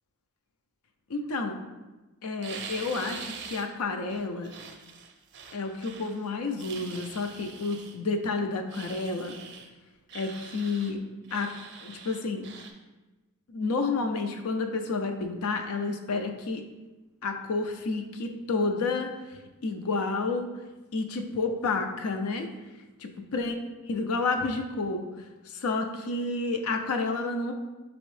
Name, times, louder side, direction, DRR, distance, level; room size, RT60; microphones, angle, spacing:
voice 1, 1.1-1.6 2.2-4.5 5.5-9.4 10.1-11.0 11.3-11.5 11.8-12.5 13.5-16.6 17.2-19.1 19.6-20.5 20.9-22.5 23.0-23.5 23.9-25.0 25.5-27.5, left 3 dB, 75° left, 5 dB, 0.5 m, -30 dB
sound 1, 2.4-3.7 4.1-6.2 6.6-8.0 8.7-9.7 10.1-10.9 11.2-12.7, right 5 dB, 55° right, 0.5 m, -44 dB
5.2 x 3.0 x 3.2 m, 1.1 s
head